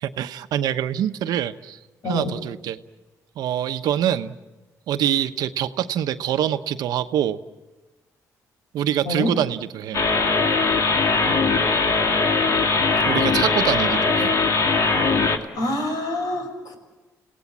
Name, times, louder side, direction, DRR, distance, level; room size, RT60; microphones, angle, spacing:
voice 1, 0.0-1.8 2.0-2.8 3.4-4.3 4.9-7.4 8.7-10.1 13.1-14.3, right 10 dB, 80° right, 9 dB, 1.0 m, -25 dB
voice 2, 9.0-9.3 15.5-16.8, left 1 dB, 75° left, 6 dB, 6.0 m, -26 dB
sound 1, 9.9-15.4, left 4 dB, 55° left, 2.3 m, -20 dB
29.5 x 18.0 x 7.5 m, 1.1 s
cardioid pair, 95°, 7 cm